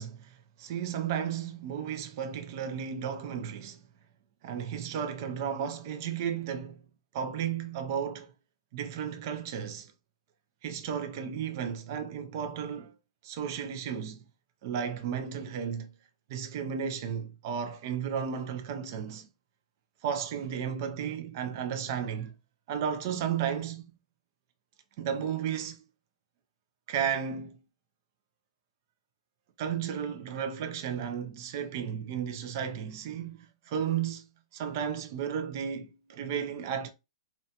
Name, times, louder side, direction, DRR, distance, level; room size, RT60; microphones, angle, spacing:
voice 1, 0.0-3.8 4.4-6.8 7.1-8.3 8.7-9.9 10.6-12.9 13.2-14.2 14.6-15.9 16.3-19.3 20.0-22.3 22.7-23.8 25.0-25.8 26.9-27.6 29.6-33.4 33.7-36.9, right 8 dB, 35° right, 0.4 m, -34 dB
2.5 x 2.2 x 2.7 m
hypercardioid pair, 170°, 3 cm